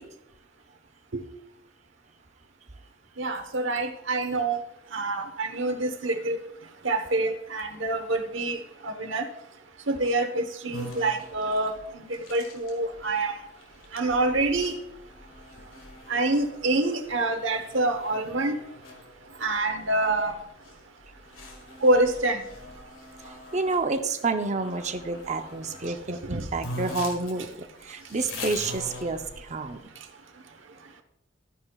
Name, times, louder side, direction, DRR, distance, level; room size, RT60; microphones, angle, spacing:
voice 1, 3.2-4.6 4.9-6.4 6.8-9.3 9.9-13.3 13.9-14.7 16.1-18.6 19.4-20.3 21.8-22.4 26.3-26.4, right 2 dB, 70° right, 6 dB, 1.1 m, -26 dB
sound 1, 10.7-23.9 24.6-26.0 26.3-26.4 26.6-29.7, left 2 dB, 85° left, 2.1 m, -43 dB
voice 2, 23.5-27.6 27.9-29.8, right 3 dB, 35° right, 7 dB, 0.7 m, -29 dB
13.0 x 9.3 x 2.4 m, 0.82 s
head